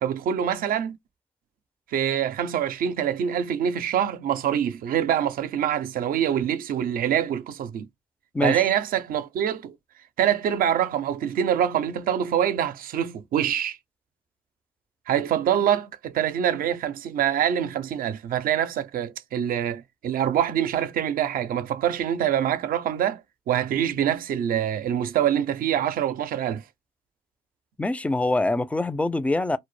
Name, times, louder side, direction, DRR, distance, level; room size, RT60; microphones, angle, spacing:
voice 1, 0.0-1.0 1.9-7.9 8.4-9.7 10.2-13.8 15.1-23.2 23.5-26.6, right 9 dB, 70° right, 0.4 m, -25 dB
voice 2, 27.8-29.6, left 2 dB, 10° left, 0.4 m, -24 dB
2.1 x 2.0 x 3.1 m
hypercardioid pair, 45°, 15 cm